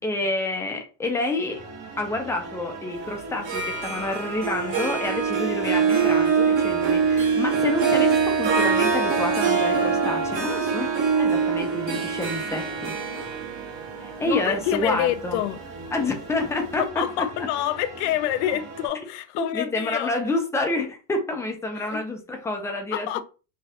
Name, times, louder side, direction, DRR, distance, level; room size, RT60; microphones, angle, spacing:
voice 1, 0.0-1.6 2.0-10.9 11.2-12.9 14.0-15.4 15.9-17.3 19.4-23.2, left 2 dB, 10° left, 0.4 m, -28 dB
sound 1, 1.5-18.9, right 3 dB, 70° right, 1.4 m, -40 dB
Harp, 3.3-16.2, right 5 dB, 40° right, 0.9 m, -24 dB
voice 2, 14.2-15.6 16.8-20.1 21.8-22.0 22.9-23.2, left 12 dB, 70° left, 0.5 m, -27 dB
3.3 x 2.4 x 2.7 m
supercardioid pair, 150°, 35 cm